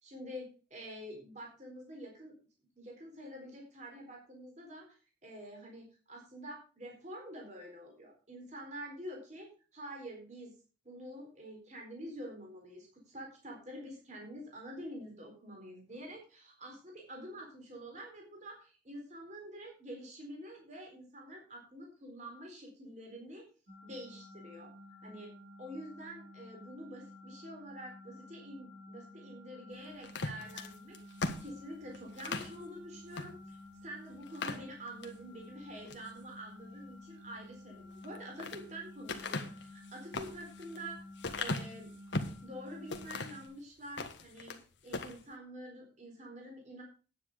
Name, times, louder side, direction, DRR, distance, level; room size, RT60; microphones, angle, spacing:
voice 1, 0.0-0.5 0.7-2.3 2.8-10.5 10.8-23.5 23.8-24.7 25.0-25.3 25.6-41.0 41.4-41.9 42.4-44.6 44.8-46.8, equal, 40° right, 1 dB, 4.1 m, -47 dB
sound 1, 23.7-43.5, left 1 dB, 55° right, 4.3 m, -52 dB
sound 2, 30.0-32.6 33.1-33.3 33.7-33.8 34.2-35.2 35.7-36.1 37.9-38.6 39.1-42.4 42.9-43.5 43.9-44.6 44.9-45.2, left 3 dB, 70° left, 1.6 m, -39 dB
10.0 x 9.5 x 5.0 m, 0.36 s
head